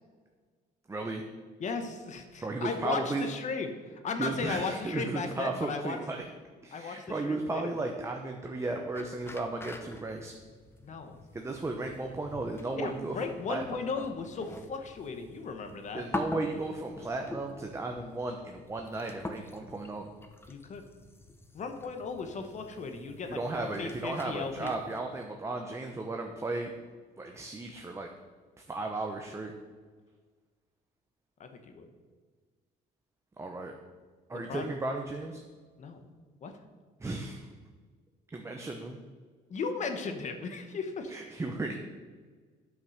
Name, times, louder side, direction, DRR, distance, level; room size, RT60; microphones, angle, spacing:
voice 1, 0.9-1.2 2.4-3.3 4.2-6.2 6.6-10.3 11.3-13.6 15.9-20.1 23.3-26.7 27.2-28.1 28.7-29.5 33.4-33.7 34.3-35.4 37.0-37.5 38.3-39.0 41.1-41.8, right 2 dB, 15° right, 2 dB, 0.8 m, -35 dB
voice 2, 1.6-6.0 6.7-7.8 10.8-11.2 12.8-16.0 20.5-20.9 21.5-24.8 31.4-31.9 34.3-34.7 35.8-36.1 36.4-36.5 39.5-41.2, left 4 dB, 45° left, 6 dB, 1.2 m, -36 dB
sound 1, 8.9-25.0, left 2 dB, 15° left, 0.8 m, -45 dB
9.1 x 5.5 x 6.5 m, 1.5 s
cardioid pair, 110°, 17 cm